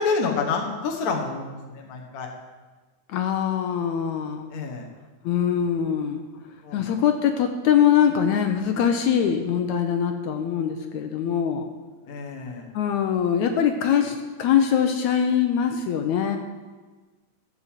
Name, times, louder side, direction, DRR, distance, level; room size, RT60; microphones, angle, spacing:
voice 1, 0.0-2.3 4.5-4.9 6.6-6.9 12.1-12.7, left 4 dB, 50° left, 1 dB, 1.1 m, -28 dB
voice 2, 3.1-4.5 5.2-6.2 6.7-11.7 12.7-16.4, left 8 dB, 75° left, 5 dB, 1.9 m, -23 dB
14.0 x 5.4 x 7.4 m, 1.3 s
omnidirectional pair, 3.7 m